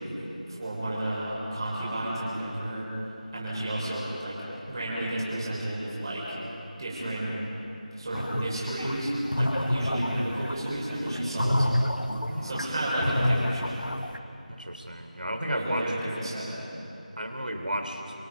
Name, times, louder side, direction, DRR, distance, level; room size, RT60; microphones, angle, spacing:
voice 1, 0.0-2.9 3.3-6.4 6.8-7.4 8.0-11.8 12.4-13.8 15.5-16.6, right 1 dB, 30° right, -7 dB, 5.9 m, -32 dB
sound 1, 8.1-14.2, left 1 dB, 90° left, 1.7 m, -28 dB
voice 2, 14.5-15.9 17.2-18.0, equal, 80° right, 5 dB, 3.5 m, -33 dB
29.0 x 27.5 x 5.3 m, 2.8 s
figure-of-eight pair, 170°, 5 cm